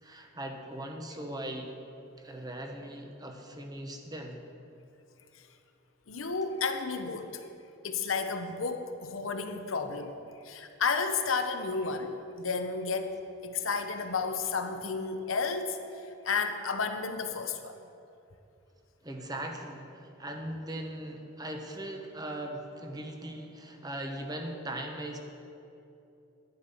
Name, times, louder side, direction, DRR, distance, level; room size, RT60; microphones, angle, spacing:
voice 1, 0.0-1.7 2.2-4.4 19.0-25.2, right 1 dB, 20° right, 3 dB, 1.0 m, -39 dB
voice 2, 6.1-7.5 7.8-10.1 10.4-17.8, left 4 dB, 90° left, 7 dB, 0.9 m, -32 dB
10.5 x 10.0 x 5.5 m, 2.8 s
head